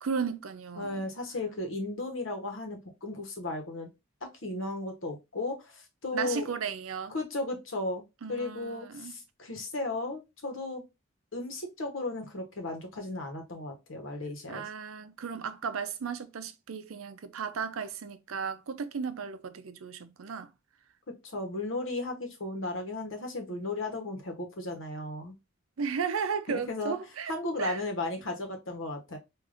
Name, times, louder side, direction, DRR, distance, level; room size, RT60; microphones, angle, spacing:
voice 1, 0.0-1.1 6.1-7.2 8.2-9.1 14.5-20.5 25.8-27.3 27.6-27.8, right 6 dB, 85° right, 0.5 m, -35 dB
voice 2, 0.8-3.9 4.4-6.6 7.1-8.0 8.3-10.8 11.3-14.7 21.2-25.3 26.5-27.0 27.3-29.2, left 2 dB, 70° left, 1.0 m, -35 dB
4.8 x 2.5 x 2.5 m
head